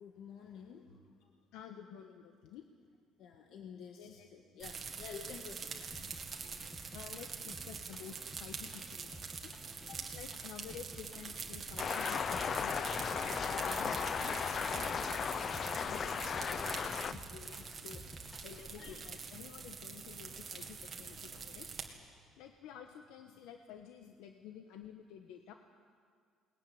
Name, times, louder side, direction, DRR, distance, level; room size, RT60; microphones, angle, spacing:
voice 1, 0.0-1.3 3.2-5.9 18.8-19.1 21.4-21.6, left 6 dB, 55° left, 3 dB, 1.7 m, -50 dB
voice 2, 1.5-2.6 4.0-4.3 6.0-6.1 6.9-9.5 9.9-18.0 18.4-21.7 22.3-25.5, left 9 dB, 85° left, 5 dB, 1.3 m, -51 dB
sound 1, 4.6-21.9, right 5 dB, 25° right, 2.0 m, -45 dB
sound 2, 5.9-19.1, equal, 5° left, 1.5 m, -53 dB
sound 3, 11.8-17.1, left 6 dB, 30° left, 0.6 m, -36 dB
22.0 x 20.0 x 9.6 m, 2.1 s
cardioid pair, 180°, 0 cm